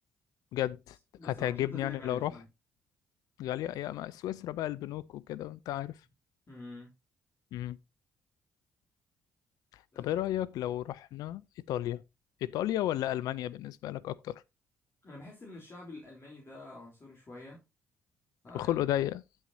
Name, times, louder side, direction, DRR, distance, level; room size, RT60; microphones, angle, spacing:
voice 1, 0.5-1.0 1.2-2.3 3.4-6.0 7.5-7.8 9.7-12.0 12.4-14.4 18.5-19.2, left 13 dB, 70° left, 0.4 m, -33 dB
voice 2, 1.2-2.4 6.5-6.9 9.9-10.1 15.0-17.6 18.4-18.8, left 2 dB, 40° left, 3.4 m, -47 dB
9.5 x 9.5 x 2.7 m
hypercardioid pair, 50°, 7 cm